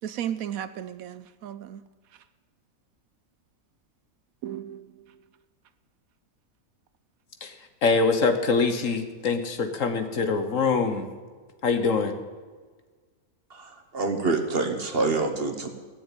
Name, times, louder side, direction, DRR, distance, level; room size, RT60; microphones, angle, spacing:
voice 1, 0.0-1.8 4.4-4.9, right 10 dB, 75° right, 13 dB, 1.0 m, -34 dB
voice 2, 7.8-11.1 11.6-12.1, left 4 dB, 60° left, 7 dB, 1.5 m, -24 dB
voice 3, 13.5-15.7, right 3 dB, 40° right, 6 dB, 1.5 m, -26 dB
16.5 x 7.0 x 9.1 m, 1.4 s
omnidirectional pair, 1.6 m